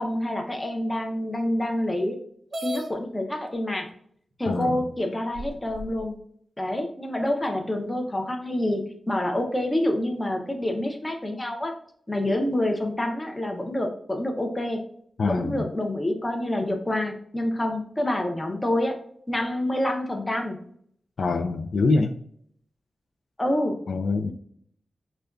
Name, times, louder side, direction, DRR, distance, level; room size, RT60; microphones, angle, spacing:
voice 1, 0.0-2.2 2.6-3.9 4.4-6.2 6.6-11.7 12.1-14.8 15.2-19.0 19.3-20.6 23.4-23.8, left 1 dB, 15° left, 3 dB, 0.6 m, -27 dB
sound 1, 2.5-2.9 3.9-4.0 4.6-4.7 5.3-6.0, equal, 45° right, 0.7 m, -34 dB
voice 2, 4.5-4.9 15.2-15.7 21.2-22.1 23.9-24.3, left 3 dB, 65° left, 5 dB, 0.3 m, -24 dB
5.0 x 2.2 x 2.3 m, 0.64 s
wide cardioid pair, 125°, 0 cm